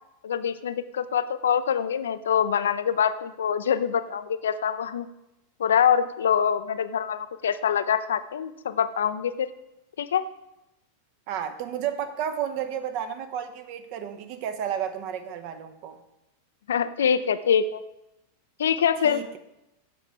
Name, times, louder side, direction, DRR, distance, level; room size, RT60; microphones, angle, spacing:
voice 1, 0.2-5.1 5.6-9.5 10.0-10.2 16.7-17.8 18.6-19.2, left 8 dB, 65° left, 13 dB, 0.4 m, -24 dB
voice 2, 11.3-16.0 19.0-19.4, right 9 dB, 45° right, 8 dB, 0.8 m, -32 dB
8.1 x 6.0 x 4.5 m, 0.91 s
figure-of-eight pair, 90°, 0 cm